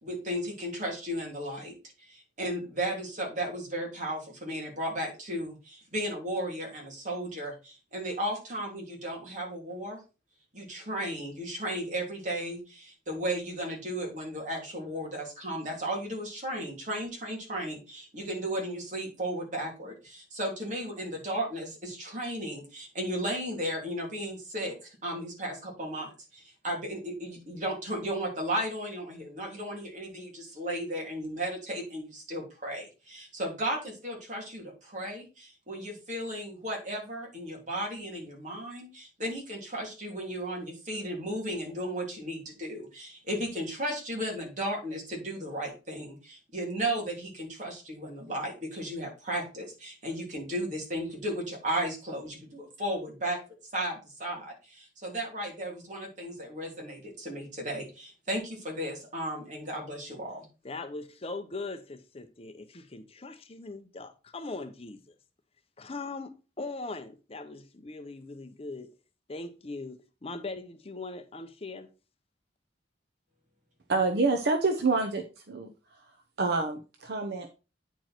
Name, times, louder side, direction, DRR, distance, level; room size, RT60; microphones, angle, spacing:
voice 1, 0.0-10.0 10.5-53.4 53.7-60.5, right 1 dB, 45° right, 3.0 m, -35 dB
voice 2, 60.6-65.1 65.8-68.9 69.3-71.9, left 3 dB, 30° left, 0.7 m, -40 dB
voice 3, 73.9-75.7 76.4-77.5, right 3 dB, 60° right, 0.8 m, -27 dB
9.1 x 4.7 x 4.3 m
head